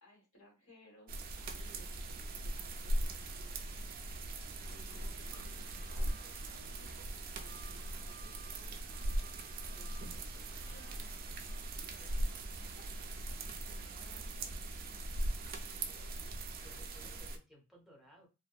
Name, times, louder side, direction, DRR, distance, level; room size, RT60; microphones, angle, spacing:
voice 1, 0.0-3.6 4.6-6.5 7.0-8.7 9.7-11.0 11.8-12.9 13.8-14.7, equal, 80° left, -2 dB, 1.4 m, -63 dB
sound 1, 1.1-17.4, right 1 dB, 40° right, 0.3 m, -40 dB
Train / Sliding door, 4.1-13.9, left 3 dB, 65° left, 0.7 m, -66 dB
sound 2, 5.4-11.8, right 2 dB, 35° left, 1.1 m, -61 dB
voice 2, 15.7-18.3, equal, ahead, -1 dB, 0.6 m, -61 dB
2.6 x 2.1 x 2.3 m, 0.28 s
head